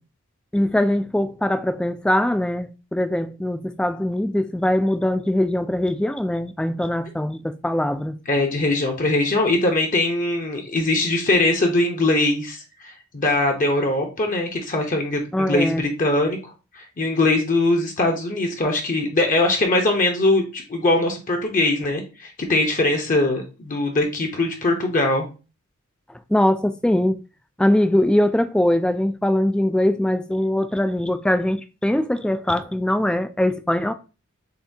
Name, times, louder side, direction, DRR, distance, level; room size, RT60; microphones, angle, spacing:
voice 1, 0.5-8.2 15.3-15.8 26.3-27.2 27.6-33.9, left 1 dB, 5° left, 0.3 m, -21 dB
voice 2, 8.3-12.6 12.8-16.4 16.7-25.3, left 2 dB, 40° left, 0.8 m, -21 dB
6.7 x 2.7 x 2.7 m
head